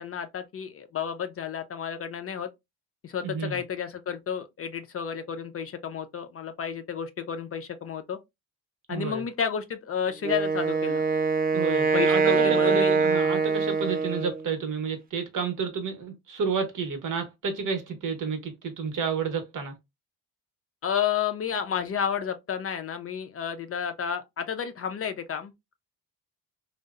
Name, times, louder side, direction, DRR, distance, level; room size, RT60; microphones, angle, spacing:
voice 1, 0.0-2.5 3.0-8.2 8.9-11.0 11.9-12.9 20.8-25.5, left 8 dB, 40° left, 0.4 m, -31 dB
voice 2, 3.2-3.6 8.9-9.2 11.5-19.7, right 5 dB, 55° right, 0.9 m, -30 dB
Wind instrument woodwind instrument, 10.2-14.5, right 5 dB, 25° right, 0.4 m, -24 dB
2.6 x 2.0 x 2.3 m
cardioid pair, 85°, 39 cm